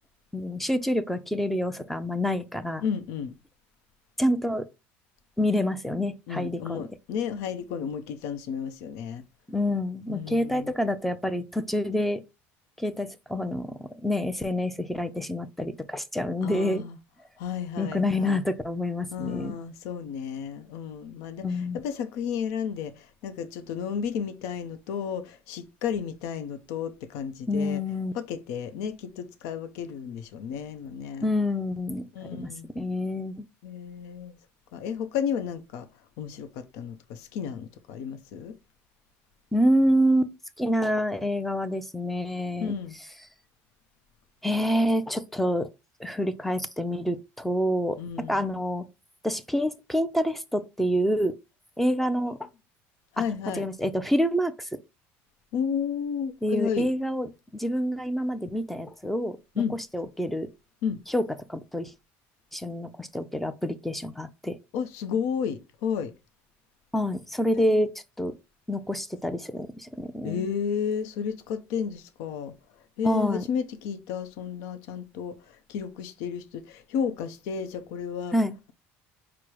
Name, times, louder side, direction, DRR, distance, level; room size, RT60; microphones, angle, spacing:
voice 1, 0.3-2.8 4.2-4.6 5.4-6.8 9.5-12.2 12.8-16.8 17.8-19.5 21.4-21.8 27.5-28.1 31.2-33.4 39.5-40.3 40.6-42.8 44.4-45.7 46.0-48.8 49.2-51.3 51.8-52.4 53.5-54.7 56.4-59.4 59.7-60.5 61.1-61.2 61.5-61.9 62.5-64.6 66.9-67.9 68.2-68.3 68.7-70.5 73.0-73.5 78.3-78.5, equal, 5° left, 0.5 m, -27 dB
voice 2, 2.8-3.3 6.3-9.2 10.1-10.8 16.4-17.0 17.4-18.4 19.1-27.8 28.1-31.3 32.1-32.7 33.6-34.3 34.7-35.9 36.2-38.6 42.6-43.0 48.0-48.4 53.1-53.7 55.5-56.9 59.6-59.8 60.8-61.0 64.7-66.1 67.7-67.8 70.2-72.5 73.0-78.4, left 7 dB, 80° left, 0.6 m, -32 dB
4.7 x 2.0 x 4.5 m
cardioid pair, 120°, 6 cm